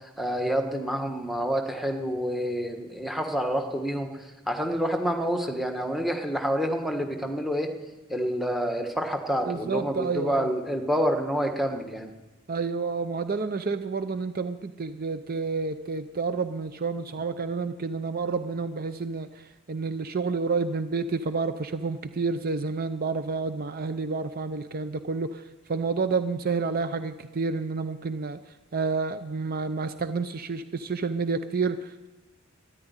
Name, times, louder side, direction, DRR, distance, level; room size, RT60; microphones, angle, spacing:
voice 1, 0.0-7.7 8.1-12.1, equal, ahead, 4 dB, 1.4 m, -28 dB
voice 2, 9.5-10.5 12.5-19.3 19.7-25.4 25.7-28.4 28.7-32.1, right 4 dB, 45° right, 10 dB, 0.6 m, -29 dB
13.5 x 10.0 x 9.7 m, 1.2 s
head